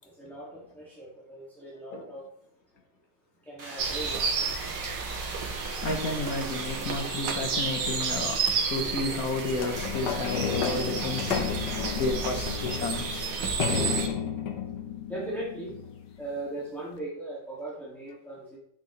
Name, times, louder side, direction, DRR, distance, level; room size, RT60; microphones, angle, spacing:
voice 1, 0.0-2.3 3.4-4.2 15.1-15.8 16.2-18.6, right 2 dB, ahead, -7 dB, 2.2 m, -38 dB
sound 1, 3.6-7.6, right 3 dB, 50° right, 2.2 m, -42 dB
sound 2, 3.8-14.1, right 5 dB, 80° right, 1.9 m, -31 dB
voice 2, 5.8-14.2, left 3 dB, 55° left, 5 dB, 1.6 m, -32 dB
sound 3, 9.6-16.3 17.0-17.1, left 7 dB, 75° left, 1.6 m, -32 dB
10.5 x 8.3 x 3.2 m, 0.75 s
omnidirectional pair, 1.9 m